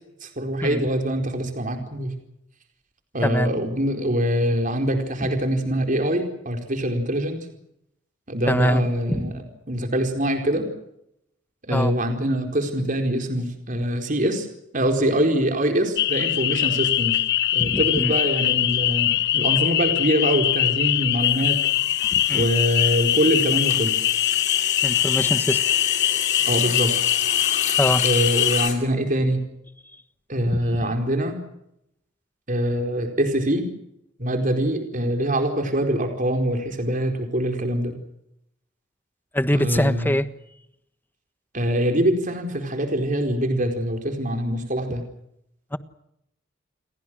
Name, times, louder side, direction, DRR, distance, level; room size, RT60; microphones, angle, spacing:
voice 1, 0.2-2.1 3.1-7.4 8.3-9.3 9.7-10.7 11.7-14.5 14.7-17.2 17.5-21.6 22.3-24.0 26.5-26.9 28.0-29.4 30.3-31.3 32.5-33.6 34.2-37.9 39.5-40.1 41.5-45.0, right 1 dB, 40° right, 5 dB, 4.5 m, -24 dB
voice 2, 3.2-3.5 8.4-9.3 11.7-12.0 17.6-18.1 22.1-22.5 24.8-25.6 27.8-28.1 30.7-30.9 39.3-40.3 45.7-45.8, left 1 dB, 10° left, 11 dB, 1.4 m, -24 dB
sound 1, 16.0-28.7, left 13 dB, 60° left, 0.9 m, -22 dB
sound 2, 19.9-20.1 20.4-28.7, left 8 dB, 40° left, 6.6 m, -31 dB
30.0 x 23.0 x 6.3 m, 0.80 s
head